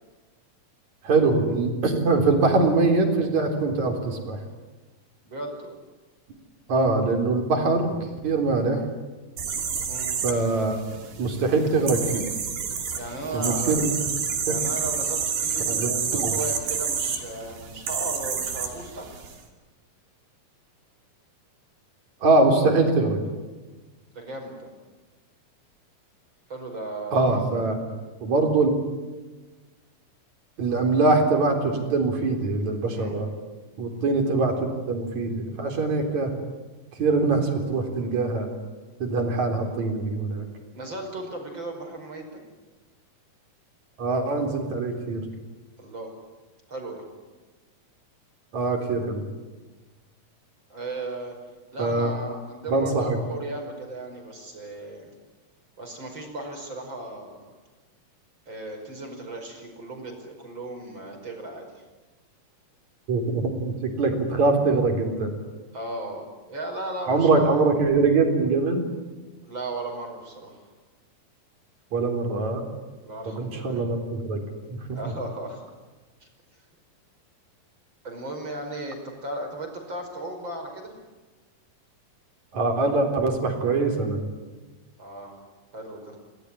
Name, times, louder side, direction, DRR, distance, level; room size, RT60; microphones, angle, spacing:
voice 1, 1.0-4.4 6.7-7.9 8.2-8.8 10.2-10.8 11.2-12.3 13.3-13.9 14.5-14.6 15.7-15.9 16.2-16.4 22.2-23.2 27.1-27.8 28.2-28.7 30.6-33.3 33.8-36.3 37.0-38.5 39.0-40.4 44.0-45.2 48.5-49.2 51.8-52.1 52.7-53.2 63.1-65.3 67.1-68.8 71.9-72.6 73.3-74.4 82.5-84.2, right 3 dB, 50° right, 4 dB, 4.9 m, -23 dB
voice 2, 5.2-5.8 9.8-10.1 13.0-13.8 14.5-19.1 24.1-24.7 26.5-27.4 27.9-28.0 32.9-33.2 40.7-42.4 45.8-46.1 46.7-47.0 50.7-51.3 51.7-55.1 55.8-57.5 58.5-61.7 65.7-67.7 69.4-70.6 73.0-73.8 74.9-75.7 76.2-76.3 78.0-80.9 85.0-85.4 85.7-86.2, right 2 dB, 30° right, 3 dB, 5.7 m, -36 dB
sound 1, 9.4-19.4, right 6 dB, 70° right, 4.6 m, -29 dB
29.0 x 19.0 x 9.9 m, 1.3 s
omnidirectional pair, 4.2 m